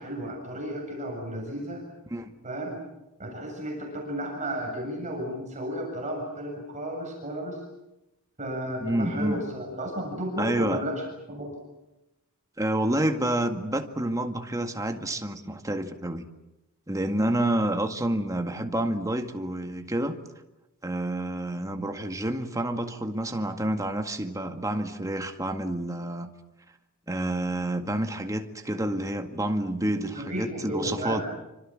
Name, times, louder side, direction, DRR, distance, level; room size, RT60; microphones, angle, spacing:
voice 1, 0.0-1.8 2.4-2.8 3.2-7.6 8.4-11.5 30.1-31.2, equal, 35° right, 1 dB, 7.2 m, -33 dB
voice 2, 8.8-9.4 10.4-10.8 12.6-16.3 16.9-20.2 20.8-26.3 27.1-31.2, right 1 dB, 15° right, 5 dB, 1.9 m, -28 dB
27.0 x 26.0 x 7.5 m, 0.96 s
head